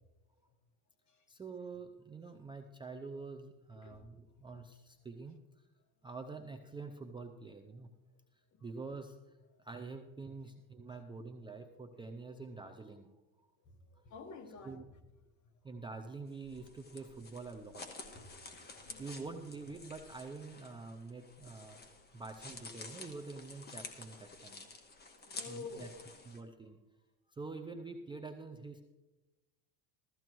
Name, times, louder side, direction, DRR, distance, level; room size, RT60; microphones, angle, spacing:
voice 1, 1.3-5.7 6.0-7.9 8.3-13.1 13.9-14.0 14.6-14.8 15.6-18.4 19.0-21.8 22.1-24.6 25.5-26.8 27.3-28.8, right 4 dB, 10° right, 0.5 m, -47 dB
voice 2, 14.0-14.8 18.1-19.1 22.1-22.2 25.1-26.0, left 4 dB, 40° left, 1.5 m, -50 dB
sound 1, 16.3-26.4, left 3 dB, 20° left, 1.6 m, -51 dB
16.0 x 14.0 x 3.0 m
supercardioid pair, 130°, 46 cm